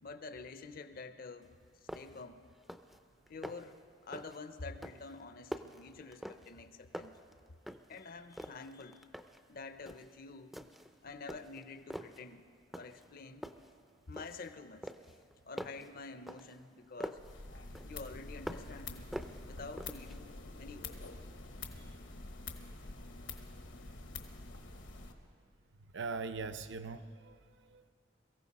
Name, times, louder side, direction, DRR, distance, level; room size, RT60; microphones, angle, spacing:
voice 1, 0.0-2.5 3.3-7.1 7.9-9.1 9.5-10.6 11.0-12.5 12.7-13.5 14.1-14.9 15.4-17.2 17.8-19.2 19.4-21.0, left 3 dB, 50° left, 11 dB, 0.6 m, -48 dB
sound 1, 1.4-1.5 1.9-2.3 2.6-3.0 3.3-3.8 4.1-4.4 4.8-6.7 6.9-8.0 8.3-9.5 9.9-10.1 10.5-10.9 11.3-12.2 12.7-13.1 13.4-14.5 14.8-17.3 17.7-18.8 19.1-20.2, equal, ahead, 0.4 m, -46 dB
sound 2, 17.2-25.1, left 3 dB, 75° left, 1.2 m, -47 dB
voice 2, 25.9-27.9, right 4 dB, 65° right, 9 dB, 0.6 m, -41 dB
22.5 x 15.0 x 4.1 m, 2.2 s
head